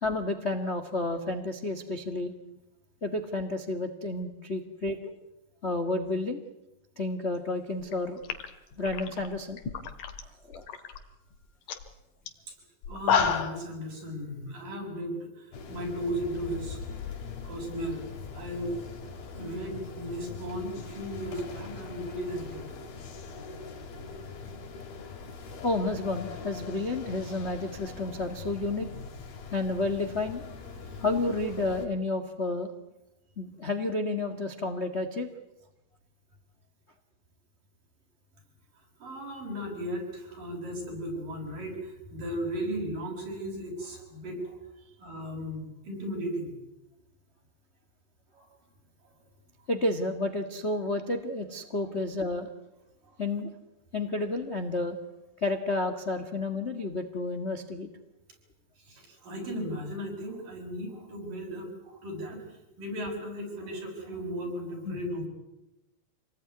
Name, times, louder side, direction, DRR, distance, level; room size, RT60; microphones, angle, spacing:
voice 1, 0.0-2.3 3.0-5.0 5.6-6.4 7.0-8.2 8.8-9.6 10.5-10.6 25.6-28.9 29.5-30.4 31.0-32.7 33.4-35.3 49.7-52.5 53.2-53.5 53.9-55.0 55.4-57.9 64.8-65.2, left 2 dB, 35° left, 7 dB, 1.1 m, -31 dB
sound 1, 7.8-7.9 8.2-10.2 10.5-11.0 11.3-11.4 11.7-11.9 12.3-12.4 12.8-13.6, left 6 dB, 65° left, 3.3 m, -29 dB
voice 2, 12.9-16.8 17.4-18.0 18.3-18.8 19.3-22.7 30.7-31.1 39.0-44.6 45.0-46.5 48.3-48.5 58.8-62.4 62.8-65.3, equal, 65° right, 2 dB, 8.0 m, -36 dB
sound 2, 15.5-31.9, left 5 dB, 85° left, 5.1 m, -42 dB
27.0 x 19.5 x 9.7 m, 0.95 s
omnidirectional pair, 4.2 m